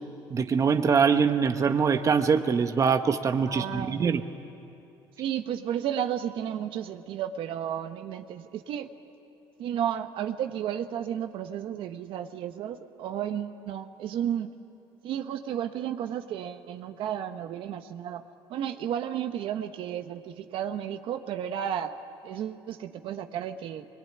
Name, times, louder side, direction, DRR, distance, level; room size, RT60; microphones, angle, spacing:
voice 1, 0.3-4.2, right 6 dB, 35° right, 7 dB, 1.1 m, -23 dB
voice 2, 3.5-4.1 5.2-8.9 9.6-14.5 15.0-18.2 18.5-21.9 22.2-23.9, right 10 dB, 65° right, 7 dB, 1.3 m, -33 dB
23.5 x 22.5 x 9.9 m, 2.8 s
cardioid pair, 100°, 9 cm